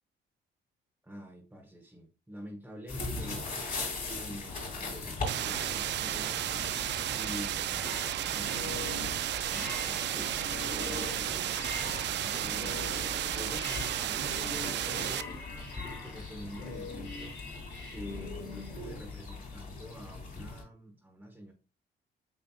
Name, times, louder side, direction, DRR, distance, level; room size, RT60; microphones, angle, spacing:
voice 1, 1.0-6.7 7.1-8.0 8.3-12.9 13.3-15.3 16.0-17.5 17.9-21.5, equal, 10° right, 1.1 m, -47 dB
sound 1, 2.9-20.6, left 3 dB, 45° left, 2.8 m, -41 dB
sound 2, 5.3-15.2, right 11 dB, 65° right, 0.4 m, -33 dB
sound 3, 7.8-19.0, left 2 dB, 60° left, 2.0 m, -43 dB
6.9 x 3.3 x 2.3 m
cardioid pair, 90°, 20 cm